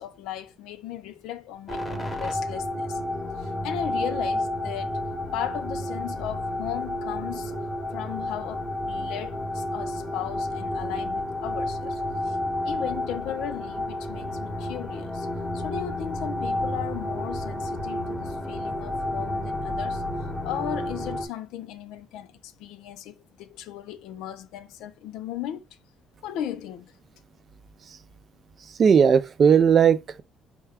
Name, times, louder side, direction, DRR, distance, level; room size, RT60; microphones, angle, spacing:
voice 1, 0.0-3.0 3.4-5.0 5.3-7.5 7.9-12.4 12.6-15.3 15.5-20.0 20.4-25.6 26.2-26.9, left 11 dB, 85° left, 0.5 m, -36 dB
sound 1, 1.7-21.3, left 1 dB, 15° left, 0.9 m, -31 dB
voice 2, 28.6-30.2, right 7 dB, 40° right, 0.4 m, -18 dB
4.4 x 2.3 x 3.4 m
cardioid pair, 125°, 0 cm